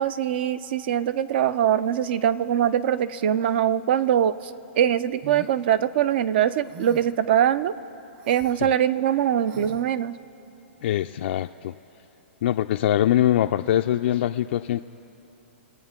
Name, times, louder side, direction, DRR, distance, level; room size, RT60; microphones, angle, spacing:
voice 1, 0.0-4.3 4.8-7.7 8.3-10.1, right 10 dB, 55° right, 15 dB, 0.5 m, -22 dB
sound 1, 5.2-5.6 6.6-7.2 8.2-8.6 9.5-9.8, right 6 dB, 40° right, 0.9 m, -42 dB
voice 2, 10.8-11.7 12.4-14.8, left 12 dB, 60° left, 6 dB, 0.3 m, -23 dB
25.0 x 8.8 x 3.7 m, 3.0 s
hypercardioid pair, 135°, 7 cm